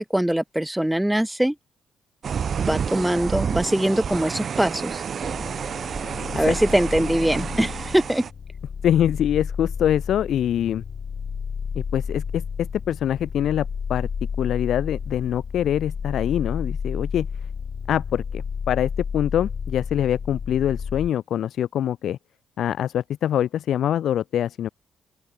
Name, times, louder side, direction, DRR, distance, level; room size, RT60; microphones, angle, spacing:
voice 1, 0.0-1.5 2.6-5.0 6.3-8.2, right 1 dB, 5° right, 1.4 m, -22 dB
sound 1, 2.2-8.3, right 7 dB, 50° right, 0.7 m, -29 dB
sound 2, 5.2-21.1, left 6 dB, 45° left, 4.1 m, -32 dB
voice 2, 8.8-10.8 11.7-14.1 14.4-17.3 17.9-22.2 22.6-24.7, left 10 dB, 70° left, 0.9 m, -24 dB
open air
cardioid pair, 90°, 0 cm